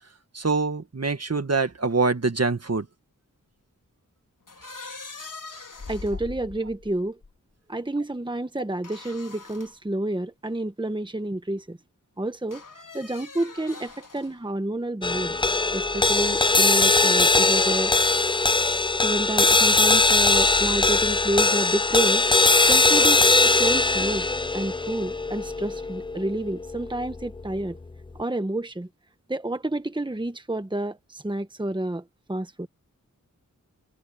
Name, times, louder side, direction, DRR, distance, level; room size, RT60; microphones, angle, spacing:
voice 1, 0.3-2.9, right 4 dB, 50° right, 1.8 m, -24 dB
sound 1, 4.5-7.3 8.8-9.8 10.5-10.6 12.5-14.4, left 3 dB, 80° left, 4.9 m, -42 dB
voice 2, 5.9-7.2 7.7-11.8 12.2-12.6 12.9-15.4 15.7-17.9 19.0-22.3 22.7-24.3 24.5-27.8 28.2-28.9 29.3-32.0 32.3-32.7, right 1 dB, 15° right, 1.3 m, -29 dB
sound 2, 15.0-27.5, left 3 dB, 15° left, 0.4 m, -21 dB
wide cardioid pair, 75°, 32 cm